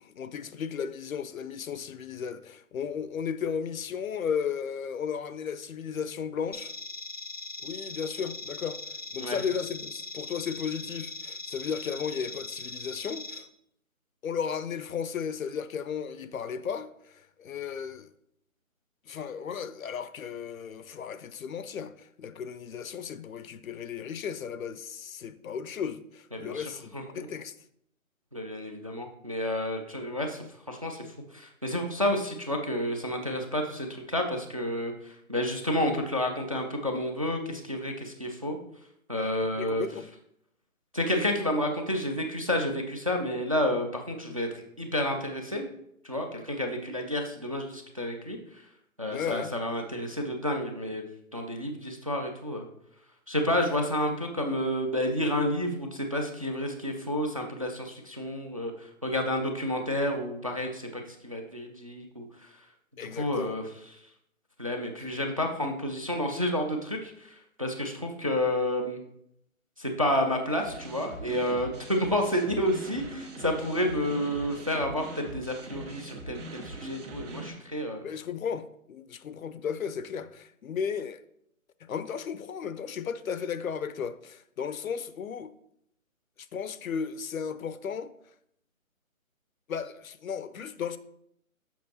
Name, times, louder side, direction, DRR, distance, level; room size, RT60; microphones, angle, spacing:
voice 1, 0.0-6.7 7.6-13.5 14.2-18.1 19.1-27.6 39.5-40.1 49.1-49.5 63.0-63.6 78.0-81.2 81.8-85.5 86.5-88.1 89.7-91.0, left 7 dB, 75° left, 0.6 m, -35 dB
sound 1, 6.5-13.4, left 3 dB, 30° left, 0.5 m, -40 dB
voice 2, 26.3-27.3 28.3-38.6 39.1-39.8 40.9-45.7 46.0-48.6 49.0-51.0 51.3-52.7 53.3-62.5 62.9-63.6 63.9-64.0 64.6-69.0 69.8-78.1, left 1 dB, 25° right, 0.4 m, -30 dB
sound 2, 70.6-77.5, right 2 dB, 60° right, 1.7 m, -42 dB
7.2 x 5.6 x 2.9 m
figure-of-eight pair, 150°, 42 cm